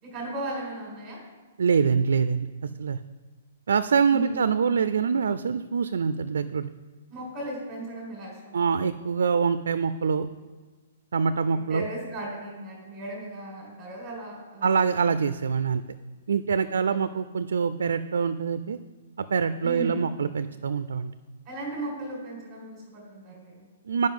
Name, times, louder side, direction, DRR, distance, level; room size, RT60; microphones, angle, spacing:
voice 1, 0.0-1.2 4.1-4.4 7.1-8.6 11.4-15.0 16.6-16.7 19.6-20.0 21.4-23.7, right 2 dB, 20° right, -2 dB, 1.6 m, -36 dB
voice 2, 1.6-3.0 3.7-6.7 8.5-10.3 11.1-11.9 14.6-15.8 16.3-18.8 19.2-21.1 23.9-24.1, right 6 dB, 85° right, 13 dB, 0.3 m, -25 dB
9.4 x 5.2 x 5.3 m, 1.3 s
hypercardioid pair, 175°, 0 cm